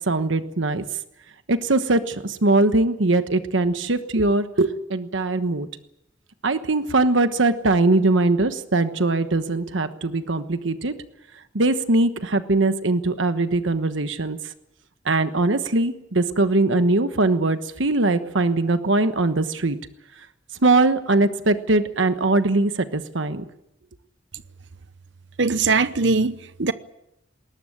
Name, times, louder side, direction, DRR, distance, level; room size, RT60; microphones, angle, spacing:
voice 1, 0.1-0.8 1.5-5.7 6.4-10.9 11.5-14.4 15.0-19.8 20.6-23.4, right 2 dB, 80° right, 1.2 m, -21 dB
voice 2, 25.4-26.7, right 4 dB, 65° right, 0.9 m, -21 dB
20.5 x 19.0 x 8.9 m
head